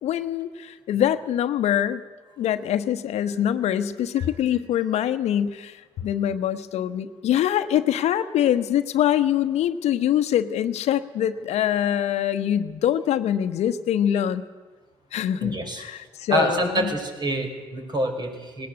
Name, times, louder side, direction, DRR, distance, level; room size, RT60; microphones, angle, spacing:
voice 1, 0.0-2.0 2.4-14.4 15.1-16.9, left 10 dB, 65° left, 11 dB, 1.1 m, -24 dB
voice 2, 15.4-15.8 16.3-18.7, right 1 dB, 35° right, 4 dB, 5.3 m, -26 dB
19.0 x 18.0 x 7.9 m, 1.3 s
hypercardioid pair, 55°, 12 cm